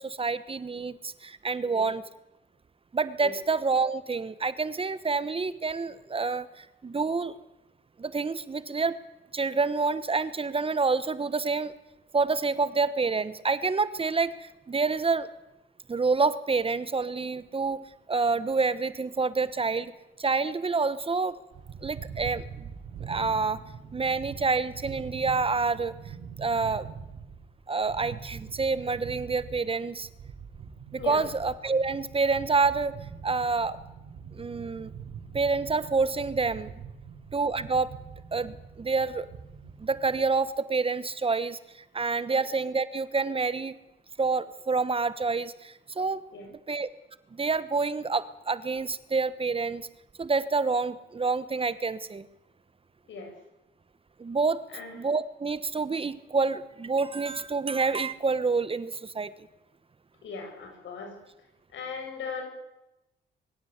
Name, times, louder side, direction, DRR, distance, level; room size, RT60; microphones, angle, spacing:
voice 1, 0.0-2.0 2.9-7.4 8.0-9.0 9.3-11.7 12.1-15.3 15.9-19.9 20.2-21.4 21.8-22.7 23.1-23.6 23.9-25.9 26.4-26.9 27.7-30.1 30.9-32.9 33.2-33.8 34.3-34.9 35.3-36.7 37.3-37.9 38.3-39.3 39.8-41.6 41.9-43.7 44.2-46.2 46.7-46.9 47.3-49.9 50.2-52.3 54.2-54.6 54.9-59.5, right 4 dB, 30° right, 15 dB, 1.1 m, -28 dB
sound 1, 21.5-40.2, right 6 dB, 70° right, 4.9 m, -43 dB
voice 2, 60.2-61.1 61.7-62.5, left 5 dB, 70° left, 4 dB, 7.6 m, -38 dB
23.5 x 16.0 x 8.1 m, 0.96 s
cardioid pair, 90°, 20 cm